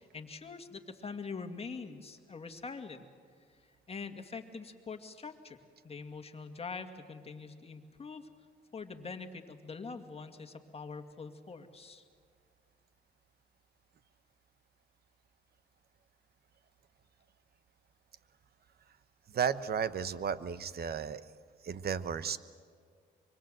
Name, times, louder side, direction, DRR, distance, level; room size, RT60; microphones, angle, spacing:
voice 1, 0.0-3.1 3.5-5.6 5.8-8.3 8.7-12.0, left 4 dB, 30° left, 6 dB, 2.2 m, -44 dB
voice 2, 19.3-21.3 21.6-22.4, right 7 dB, 50° right, 14 dB, 1.1 m, -34 dB
25.0 x 24.0 x 7.7 m, 2.1 s
cardioid pair, 90°, 20 cm